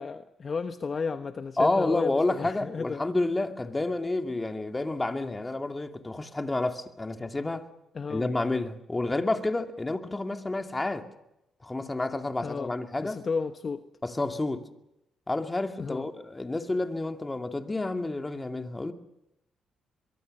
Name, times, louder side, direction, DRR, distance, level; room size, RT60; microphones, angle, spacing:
voice 1, 0.0-3.0 7.9-8.3 12.4-12.7 13.0-13.8 15.8-16.1, left 5 dB, 40° left, 1.1 m, -33 dB
voice 2, 1.6-7.7 8.1-11.1 11.6-13.2 14.0-14.7 15.3-18.9, left 2 dB, 15° left, 2.4 m, -29 dB
23.5 x 23.0 x 6.7 m
cardioid pair, 90°, 0 cm